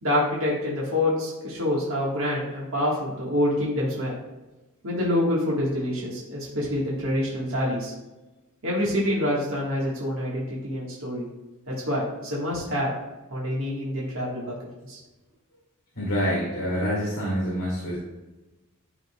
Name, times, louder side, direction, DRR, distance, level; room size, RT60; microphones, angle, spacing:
voice 1, 0.0-4.2 4.8-7.9 8.6-11.3 11.7-12.9 13.3-14.5 14.9-15.0, left 1 dB, 70° right, -5 dB, 1.6 m, -26 dB
voice 2, 16.0-18.0, equal, 75° left, -7 dB, 2.0 m, -26 dB
11.5 x 3.9 x 2.3 m, 1.1 s
head